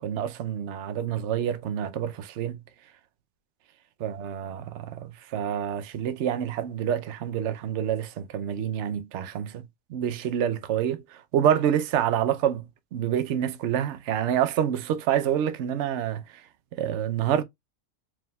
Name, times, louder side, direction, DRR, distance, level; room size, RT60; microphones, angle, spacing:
voice 1, 0.0-2.6 4.0-9.6 9.9-12.7 12.9-16.2 16.8-17.4, right 9 dB, 65° right, 0.9 m, -27 dB
4.8 x 3.6 x 2.3 m
omnidirectional pair, 1.4 m